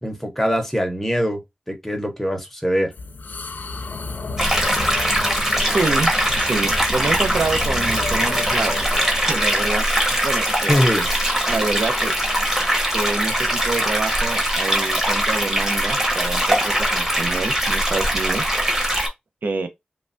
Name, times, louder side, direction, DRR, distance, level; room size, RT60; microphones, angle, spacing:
voice 1, 0.0-1.4 1.7-2.9 10.7-11.1, equal, 5° left, 0.8 m, -22 dB
sound 1, 2.9-12.7, left 4 dB, 75° left, 0.4 m, -33 dB
sound 2, 4.4-19.1, equal, 15° right, 1.0 m, -21 dB
voice 2, 5.7-9.9 10.2-10.8 11.5-12.1 12.9-18.5 19.4-19.7, right 3 dB, 85° right, 0.5 m, -27 dB
3.1 x 2.1 x 2.5 m
wide cardioid pair, 95°, 3 cm